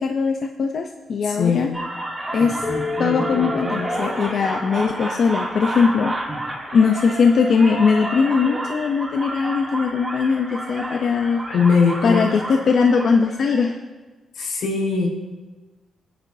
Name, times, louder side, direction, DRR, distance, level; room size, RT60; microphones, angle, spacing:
voice 1, 0.0-1.7 2.3-2.6 3.0-6.1 6.7-11.4 12.0-13.8, left 5 dB, 60° left, 4 dB, 0.7 m, -20 dB
voice 2, 1.2-1.7 11.5-12.2 14.3-15.1, left 5 dB, 90° left, -2 dB, 4.7 m, -20 dB
sound 1, 1.7-13.7, right 1 dB, 15° right, 2.7 m, -30 dB
Keyboard (musical), 2.6-5.8, left 6 dB, 10° left, 2.5 m, -32 dB
23.0 x 10.5 x 2.8 m, 1.3 s
cardioid pair, 120°, 0 cm